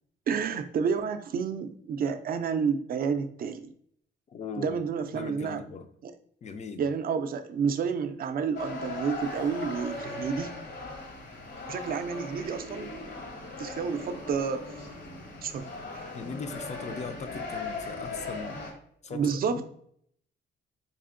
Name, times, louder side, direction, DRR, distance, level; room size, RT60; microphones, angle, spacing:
voice 1, 0.3-3.7 4.6-5.6 6.0-6.1 6.8-10.5 11.7-12.9 13.6-14.7 15.4-16.1 19.1-19.6, right 6 dB, 50° right, 0.4 m, -30 dB
voice 2, 4.3-4.8 5.1-5.9 6.4-6.8 16.1-18.6 19.0-19.6, left 5 dB, 35° left, 0.4 m, -39 dB
sound 1, 8.5-18.7, left 3 dB, 65° left, 1.0 m, -39 dB
4.2 x 2.7 x 2.5 m
cardioid pair, 90°, 20 cm